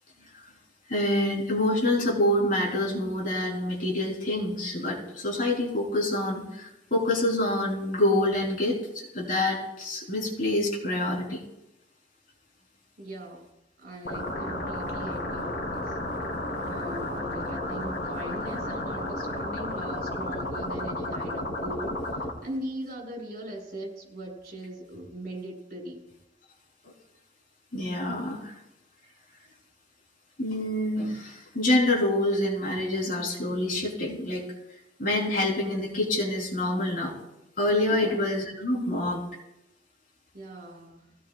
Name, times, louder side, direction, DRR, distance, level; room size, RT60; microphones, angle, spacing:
voice 1, 0.9-11.4 26.8-26.9 27.7-28.5 30.4-34.4 35.0-37.1 37.6-39.3, left 1 dB, 50° left, -2 dB, 3.9 m, -26 dB
voice 2, 13.0-13.5 13.8-16.0 16.6-26.0 37.9-38.2 40.3-41.0, right 1 dB, 55° right, -1 dB, 6.0 m, -39 dB
sound 1, 14.0-22.3, left 1 dB, 70° left, 3.2 m, -32 dB
20.5 x 17.0 x 2.4 m, 0.89 s
head